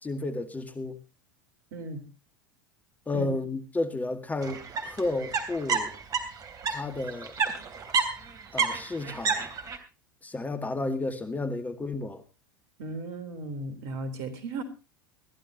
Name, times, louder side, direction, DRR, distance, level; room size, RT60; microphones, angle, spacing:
voice 1, 0.0-1.0 3.1-5.9 6.7-7.4 8.5-9.5 10.2-12.2, left 2 dB, 15° left, 2.0 m, -32 dB
voice 2, 1.7-2.0 3.1-3.3 12.8-14.6, right 3 dB, 60° right, 3.7 m, -36 dB
sound 1, 4.4-6.8 7.0-9.8, right 5 dB, 35° right, 3.1 m, -29 dB
22.0 x 14.5 x 2.9 m
figure-of-eight pair, 80°, 11 cm